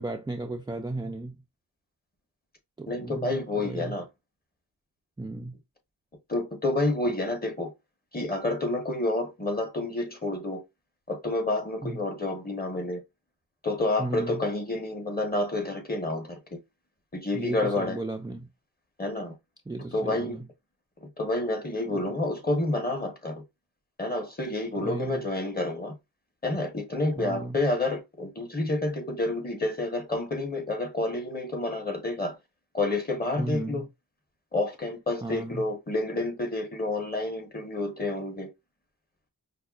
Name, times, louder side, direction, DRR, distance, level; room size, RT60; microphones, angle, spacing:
voice 1, 0.0-1.4 2.8-4.0 5.2-5.6 11.8-12.0 14.0-14.4 17.3-18.5 19.7-20.5 21.9-22.0 24.8-25.2 27.2-27.6 33.4-33.9 35.2-35.6, right 2 dB, 10° right, 0.3 m, -35 dB
voice 2, 2.9-4.0 6.3-7.7 8.1-10.6 11.1-13.0 13.6-16.6 17.1-18.0 19.0-19.3 19.9-20.4 21.0-23.4 24.0-25.9 26.4-32.4 32.7-33.9 34.5-38.5, left 2 dB, 25° left, 1.1 m, -29 dB
5.3 x 2.1 x 2.4 m
cardioid pair, 55°, 38 cm